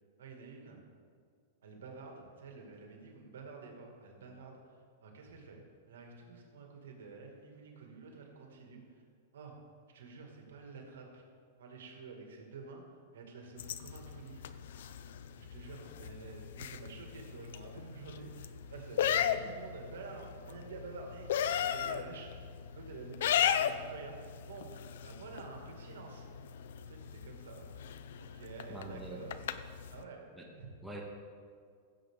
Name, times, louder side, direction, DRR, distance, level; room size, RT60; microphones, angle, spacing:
voice 1, 0.2-0.8 1.6-4.6 5.0-9.0 9.3-9.5 9.9-11.3 11.6-14.4 15.4-21.3 21.6-24.7 25.0-26.3 26.9-27.7 28.2-29.5 29.9-30.2 30.6-30.7, right 4 dB, 85° right, 1 dB, 2.2 m, -49 dB
sound 1, 13.6-30.0, left 9 dB, 75° left, 0.5 m, -37 dB
voice 2, 28.7-29.2 30.3-30.5 30.8-31.0, right 2 dB, 5° right, -3 dB, 1.5 m, -44 dB
15.5 x 7.6 x 3.7 m, 2.1 s
supercardioid pair, 145°, 0 cm